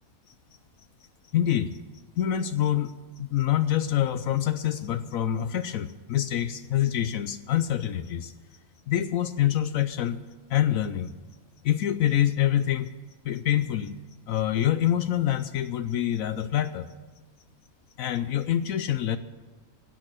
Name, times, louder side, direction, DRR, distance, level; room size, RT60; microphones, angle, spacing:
voice 1, 1.3-1.8 2.2-8.3 8.9-10.2 10.5-11.1 11.6-12.9 13.2-14.0 14.3-16.9 18.0-19.2, left 11 dB, 70° left, 11 dB, 1.0 m, -26 dB
16.5 x 6.4 x 8.9 m, 1.4 s
omnidirectional pair, 1.5 m